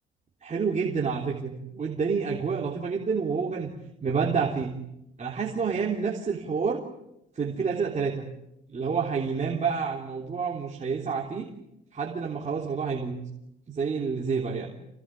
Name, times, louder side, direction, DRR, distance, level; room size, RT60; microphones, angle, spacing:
voice 1, 0.4-3.7 4.0-4.8 5.2-6.8 7.3-8.3 8.7-11.5 11.9-13.2 13.7-14.7, right 5 dB, 35° right, 0 dB, 3.4 m, -28 dB
26.5 x 18.5 x 9.9 m, 0.87 s
cardioid pair, 90°, 20 cm